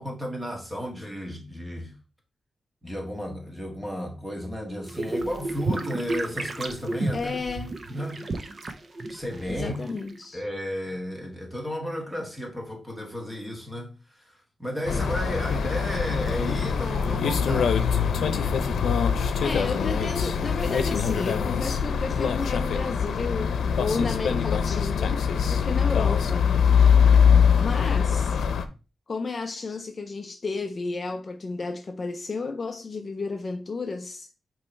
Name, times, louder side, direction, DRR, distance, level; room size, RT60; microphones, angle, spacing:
voice 1, 0.0-1.9 2.8-7.4 7.9-8.5 9.1-9.8 10.3-17.8, equal, 5° right, 1.6 m, -33 dB
sound 1, 4.8-10.2, right 2 dB, 35° right, 0.7 m, -32 dB
voice 2, 7.1-7.8 9.5-10.4 19.4-26.5 27.6-28.4 29.1-34.3, left 4 dB, 35° left, 0.5 m, -32 dB
sound 2, 14.9-28.6, left 7 dB, 90° left, 0.7 m, -23 dB
8.5 x 3.1 x 4.4 m
wide cardioid pair, 170°, 0 cm